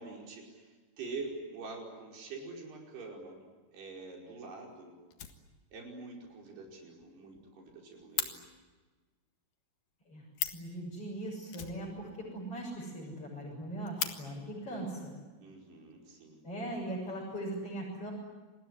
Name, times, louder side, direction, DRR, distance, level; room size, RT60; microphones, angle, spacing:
voice 1, 0.0-3.5 3.7-5.0 5.7-8.4 15.4-16.4, right 3 dB, 75° right, 0 dB, 7.2 m, -45 dB
Fire, 3.9-4.0 4.4-4.5 4.7-4.8 5.1-5.9 6.2-6.3 6.7-6.8 7.0-7.1 7.4-8.3 10.1-10.2 10.3-10.7 11.5-12.4 12.7-12.8 13.1-13.2 13.6-14.1 15.1-15.3 15.9-16.5, left 9 dB, 60° left, 3.0 m, -38 dB
voice 2, 10.5-15.1 16.4-18.1, right 1 dB, 35° left, -5 dB, 7.9 m, -40 dB
28.5 x 20.5 x 9.9 m, 1.3 s
omnidirectional pair, 4.7 m